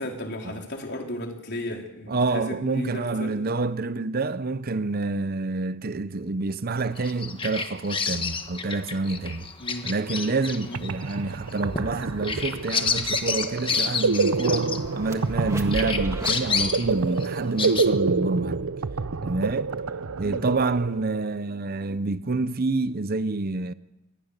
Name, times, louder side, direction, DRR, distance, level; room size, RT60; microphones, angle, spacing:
voice 1, 0.0-3.4 9.6-9.9 10.6-10.8 20.2-20.4, left 1 dB, 55° left, 4.2 m, -34 dB
voice 2, 2.1-9.5 9.8-18.7 19.2-19.7 20.2-23.7, right 3 dB, 45° right, 0.7 m, -27 dB
Bird vocalization bird call bird song, 7.0-15.4 15.7-17.9, left 5 dB, 25° left, 1.4 m, -30 dB
sound 1, 10.5-10.6 10.7-21.3, right 4 dB, 90° right, 0.7 m, -28 dB
sound 2, 11.4-16.4, right 1 dB, 15° right, 1.7 m, -39 dB
25.5 x 20.0 x 6.7 m
head